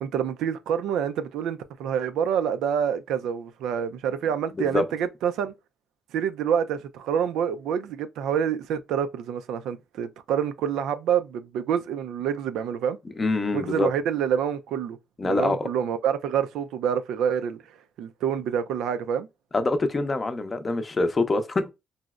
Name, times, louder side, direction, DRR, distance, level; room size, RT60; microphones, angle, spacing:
voice 1, 0.0-5.5 6.1-13.0 13.5-15.0 15.2-17.6 18.0-19.3, right 8 dB, 85° right, 0.3 m, -27 dB
voice 2, 13.2-13.9 15.2-15.7 19.5-21.7, left 3 dB, 30° left, 0.5 m, -25 dB
3.9 x 2.0 x 2.3 m
cardioid pair, 90°, 0 cm